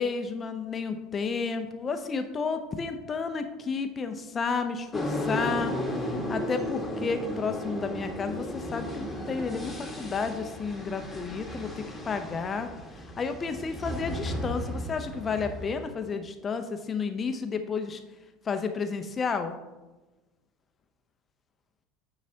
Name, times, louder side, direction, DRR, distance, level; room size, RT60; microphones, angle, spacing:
voice 1, 0.0-12.7 12.9-18.0 18.4-19.5, left 5 dB, 30° left, 8 dB, 0.6 m, -32 dB
sound 1, 4.9-15.9, left 1 dB, 10° left, 1.5 m, -34 dB
9.2 x 4.0 x 2.8 m, 1.1 s
figure-of-eight pair, 70°, 0 cm